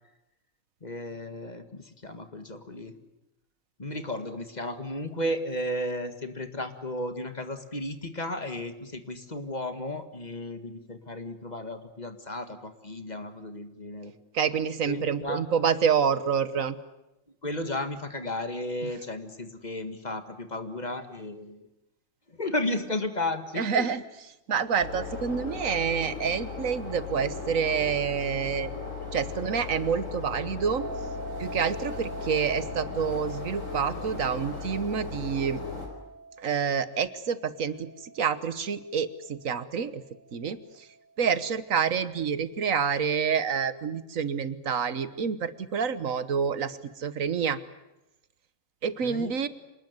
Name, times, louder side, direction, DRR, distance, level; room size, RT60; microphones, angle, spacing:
voice 1, 0.8-2.9 3.8-14.1 14.9-15.4 17.4-21.6 22.3-24.0 49.0-49.3, left 1 dB, 35° left, 8 dB, 1.9 m, -34 dB
voice 2, 14.3-16.7 18.8-18.9 23.6-24.0 24.5-28.7 29.1-30.9 31.4-35.6 36.4-37.9 38.2-40.0 40.3-40.6 41.2-47.6 48.8-49.5, right 6 dB, 85° right, 14 dB, 1.6 m, -28 dB
sound 1, 24.8-35.9, left 4 dB, 75° left, 4.9 m, -37 dB
sound 2, 30.8-41.7, right 3 dB, 10° right, 2.3 m, -45 dB
27.0 x 19.5 x 9.5 m, 0.94 s
omnidirectional pair, 1.4 m